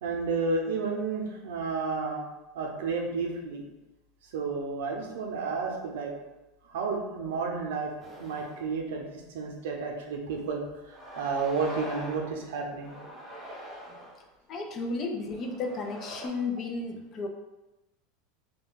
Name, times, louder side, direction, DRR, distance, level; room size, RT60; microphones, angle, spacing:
voice 1, 0.0-2.2 2.5-3.6 4.3-6.1 6.7-7.9 8.2-13.0, right 4 dB, 85° right, 1 dB, 0.5 m, -31 dB
sound 1, 8.0-8.7 9.2-9.3 10.3-10.5 10.9-12.4 12.8-14.2 15.0-16.3, equal, 15° right, 1.0 m, -43 dB
voice 2, 14.5-17.3, left 3 dB, 35° left, 4 dB, 0.4 m, -33 dB
2.3 x 2.2 x 3.6 m, 1.0 s
supercardioid pair, 140°, 0 cm